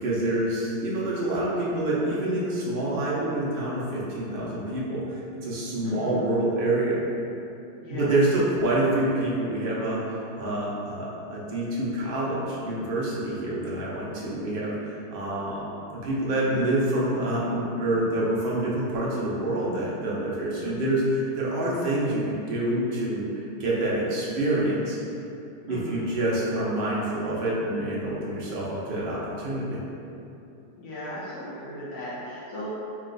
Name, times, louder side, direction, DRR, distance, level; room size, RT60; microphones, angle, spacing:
voice 1, 0.0-7.0 7.9-15.7 16.0-25.0 25.7-29.8, right 1 dB, 50° right, -6 dB, 0.6 m, -27 dB
voice 2, 5.8-6.2 7.8-8.1 13.4-13.5 20.6-20.8 25.7-26.0 30.8-32.7, left 1 dB, 75° left, -10 dB, 1.6 m, -37 dB
3.2 x 2.9 x 3.9 m, 2.8 s
omnidirectional pair, 1.9 m